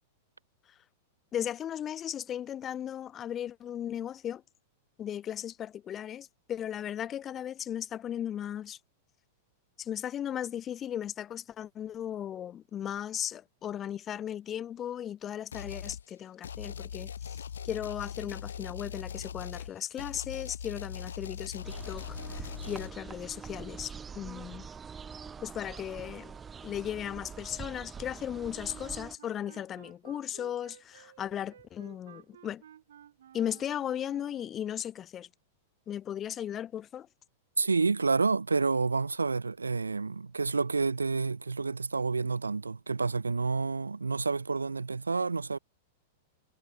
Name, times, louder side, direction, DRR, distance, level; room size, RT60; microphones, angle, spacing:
voice 1, 1.3-4.4 5.0-8.8 9.8-24.7 25.4-26.3 26.6-32.6 33.3-35.3 35.9-37.1, left 10 dB, 25° left, 2.0 m, -36 dB
sound 1, 15.5-16.0 16.4-22.9, left 8 dB, 70° left, 6.6 m, -40 dB
sound 2, 21.6-29.2, right 6 dB, 20° right, 2.6 m, -44 dB
Wind instrument woodwind instrument, 28.6-34.7, right 10 dB, 65° right, 6.7 m, -55 dB
voice 2, 37.6-45.6, right 4 dB, 85° right, 3.5 m, -29 dB
figure-of-eight pair, 95°, 0 cm